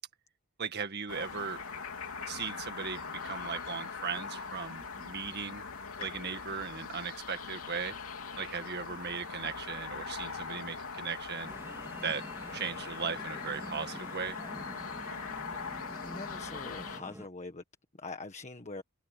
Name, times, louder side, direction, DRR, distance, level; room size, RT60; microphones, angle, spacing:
voice 1, 0.6-1.6 2.2-5.6 6.0-8.0 8.4-11.5 12.0-12.2 12.5-14.4, right 6 dB, 50° right, 1.8 m, -37 dB
sound 1, 1.1-17.0, left 5 dB, 75° left, 3.3 m, -41 dB
sound 2, 11.4-17.3, right 1 dB, 10° right, 2.0 m, -47 dB
voice 2, 16.0-17.6 18.0-18.8, left 3 dB, 30° left, 1.5 m, -43 dB
head